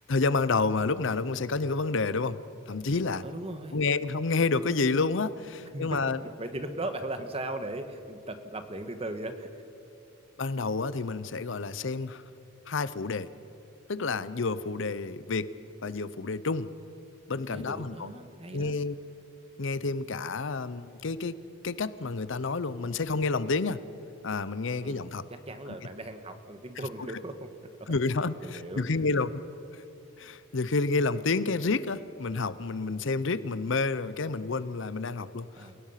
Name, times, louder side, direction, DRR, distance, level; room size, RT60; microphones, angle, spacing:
voice 1, 0.1-2.4 2.7-3.2 3.7-6.2 10.4-12.2 12.7-13.3 13.9-15.5 15.8-16.7 17.3-18.1 18.5-19.0 19.6-21.4 21.6-23.8 24.2-25.2 25.7-25.8 27.9-29.3 29.7-29.8 30.2-35.7, left 3 dB, 65° left, 15 dB, 0.7 m, -29 dB
voice 2, 3.2-3.8 5.7-9.6 17.5-18.8 24.8-25.0 25.3-27.5 27.9-28.0 28.4-28.8 35.6-35.8, right 1 dB, 30° right, 8 dB, 1.4 m, -38 dB
29.0 x 17.0 x 5.8 m, 2.8 s
head